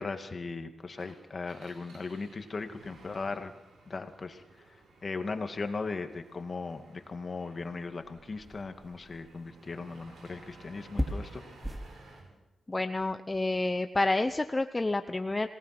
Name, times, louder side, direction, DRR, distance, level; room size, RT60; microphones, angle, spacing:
voice 1, 0.0-3.5 3.9-4.4 5.0-11.4, left 4 dB, 45° left, 7 dB, 2.2 m, -38 dB
Engine, 0.9-12.3, right 2 dB, 80° right, 7.4 m, -56 dB
sound 1, 5.5-12.0, equal, ahead, 3.1 m, -41 dB
voice 2, 12.7-15.5, left 2 dB, 25° left, 9 dB, 0.8 m, -29 dB
27.0 x 18.5 x 6.1 m, 1.0 s
cardioid pair, 70°, 0 cm